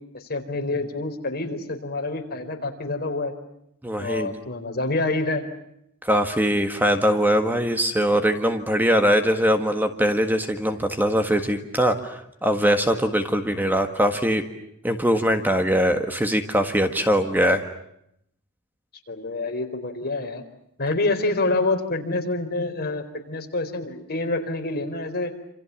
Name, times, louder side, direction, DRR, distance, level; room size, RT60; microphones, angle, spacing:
voice 1, 0.1-3.3 4.0-5.4 19.1-20.4 20.8-25.3, left 2 dB, 45° left, 4 dB, 4.4 m, -27 dB
voice 2, 3.8-4.4 6.0-12.2 12.4-14.4 14.8-17.6, equal, 10° right, 7 dB, 1.7 m, -21 dB
28.0 x 28.0 x 7.1 m, 0.77 s
head